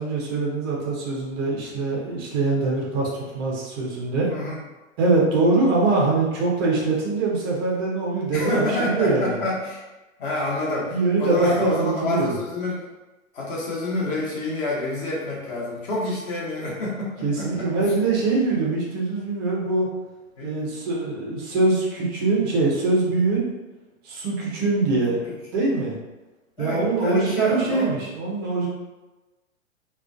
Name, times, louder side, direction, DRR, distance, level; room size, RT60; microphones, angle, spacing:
voice 1, 0.0-4.3 5.0-9.4 10.7-12.3 17.2-19.9 20.4-23.5 24.0-25.2 25.5-26.0 26.6-28.7, right 3 dB, 20° right, -3 dB, 0.3 m, -23 dB
voice 2, 4.3-4.6 8.3-9.8 10.2-12.8 13.3-17.7 20.4-20.5 25.1-25.2 26.6-27.9, left 2 dB, 40° left, -5 dB, 0.9 m, -28 dB
2.3 x 2.1 x 2.5 m, 1.1 s
figure-of-eight pair, 110°, 40 cm